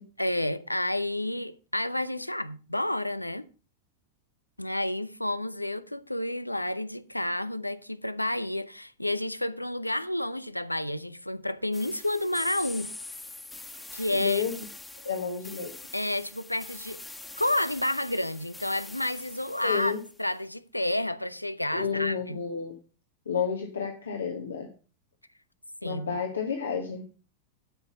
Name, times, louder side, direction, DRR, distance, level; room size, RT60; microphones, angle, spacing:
voice 1, 0.2-3.5 4.6-12.9 13.9-14.4 15.9-17.0 17.4-22.4 25.8-26.2, left 1 dB, 85° left, 0.6 m, -30 dB
sound 1, 11.7-20.2, left 2 dB, 10° left, 1.4 m, -44 dB
voice 2, 14.1-14.6 15.0-15.7 19.6-20.0 21.7-22.7 23.3-24.7 25.8-27.0, left 6 dB, 70° left, 1.5 m, -30 dB
12.0 x 5.8 x 5.7 m
figure-of-eight pair, 90°, 0 cm